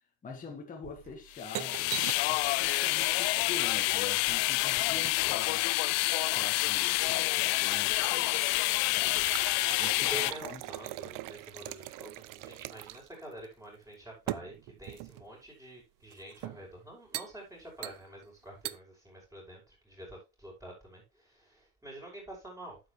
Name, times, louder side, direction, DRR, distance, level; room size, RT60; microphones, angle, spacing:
voice 1, 0.2-2.0 2.2-5.7 6.3-9.3 9.7-10.6, left 5 dB, 20° left, 1.7 m, -45 dB
sound 1, 0.8-2.4 3.8-5.2 6.0-6.7 7.2-7.3 7.6-13.2 13.4-13.5 14.3-15.3 16.1-16.7 17.1-17.4 17.8-18.3 18.6-18.8, right 18 dB, 55° right, 0.6 m, -42 dB
sound 2, 1.4-10.3, left 24 dB, 75° left, 0.5 m, -28 dB
voice 2, 9.8-22.8, right 1 dB, 10° right, 5.4 m, -47 dB
9.7 x 7.9 x 3.2 m
cardioid pair, 155°, 40 cm